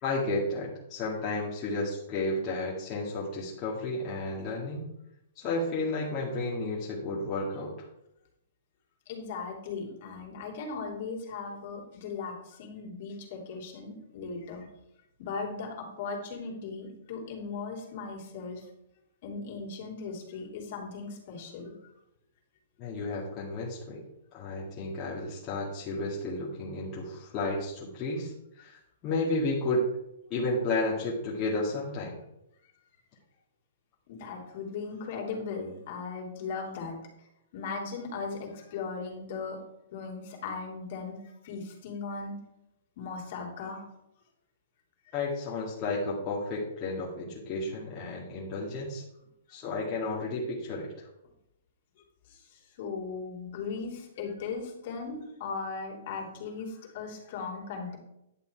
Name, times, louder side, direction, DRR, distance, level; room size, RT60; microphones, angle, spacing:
voice 1, 0.0-4.8 5.4-7.9 22.8-24.0 24.3-29.9 30.3-32.2 45.1-49.0 49.5-51.1, left 2 dB, 25° left, -5 dB, 2.1 m, -32 dB
voice 2, 9.1-14.7 15.2-18.6 19.2-21.7 34.1-37.0 37.5-39.6 39.9-41.2 41.4-42.4 43.0-43.8 52.3-58.0, left 4 dB, 45° left, 0 dB, 3.1 m, -38 dB
11.0 x 6.9 x 4.6 m, 0.82 s
hypercardioid pair, 160°, 0 cm